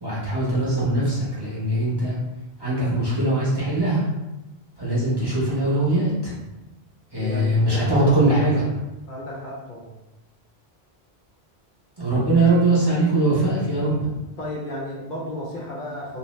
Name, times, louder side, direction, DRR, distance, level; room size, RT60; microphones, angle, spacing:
voice 1, 0.0-2.2 2.6-4.1 4.8-6.4 7.1-8.6 12.0-14.1, right 2 dB, 25° right, -9 dB, 0.6 m, -21 dB
voice 2, 7.2-8.6 9.1-9.9 14.4-16.2, left 1 dB, 55° left, -4 dB, 0.6 m, -33 dB
2.6 x 2.0 x 3.1 m, 0.99 s
omnidirectional pair, 1.1 m